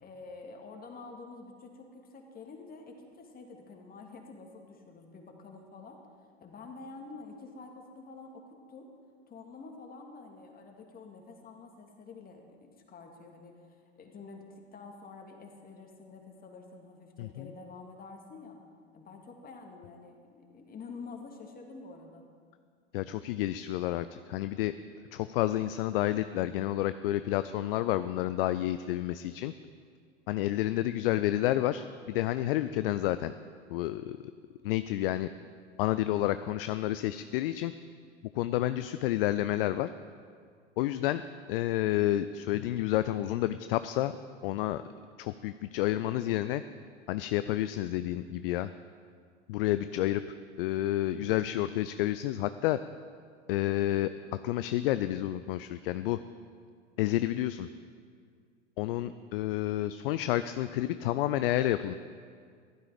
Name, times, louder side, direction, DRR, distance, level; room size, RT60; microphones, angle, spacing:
voice 1, 0.0-6.0 6.4-8.9 9.3-12.6 12.9-18.6 18.9-22.2, left 4 dB, 25° left, 2 dB, 2.2 m, -48 dB
voice 2, 22.9-24.7 25.1-29.5 30.3-33.3 33.7-34.2 34.6-35.3 35.8-37.7 38.3-39.9 40.8-41.2 41.5-44.1 44.4-44.8 45.2-46.6 47.1-48.7 49.5-50.2 50.6-52.8 53.5-54.1 54.4-56.2 57.0-57.7 58.8-61.9, left 14 dB, 50° left, 12 dB, 0.5 m, -30 dB
15.0 x 12.0 x 5.1 m, 2.1 s
figure-of-eight pair, 85°, 36 cm